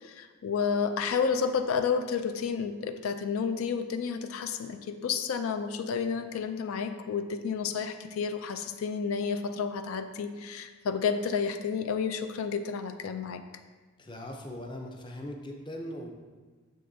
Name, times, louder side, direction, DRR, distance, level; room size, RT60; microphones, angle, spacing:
voice 1, 0.0-13.4, left 6 dB, 85° left, 8 dB, 0.4 m, -31 dB
voice 2, 14.0-16.1, left 1 dB, 20° left, 2 dB, 0.5 m, -40 dB
6.8 x 6.3 x 2.7 m, 1.4 s
head